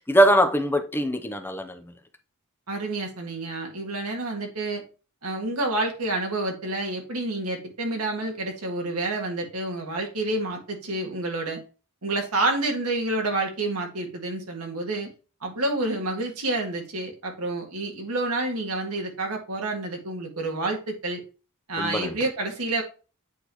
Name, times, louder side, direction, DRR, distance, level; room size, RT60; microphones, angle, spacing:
voice 1, 0.1-1.9 21.8-22.2, right 1 dB, 10° left, 0.6 m, -22 dB
voice 2, 2.7-4.8 5.2-11.6 12.0-15.1 15.4-21.2 21.7-22.8, right 2 dB, 85° right, 1.8 m, -29 dB
8.4 x 3.9 x 3.0 m
head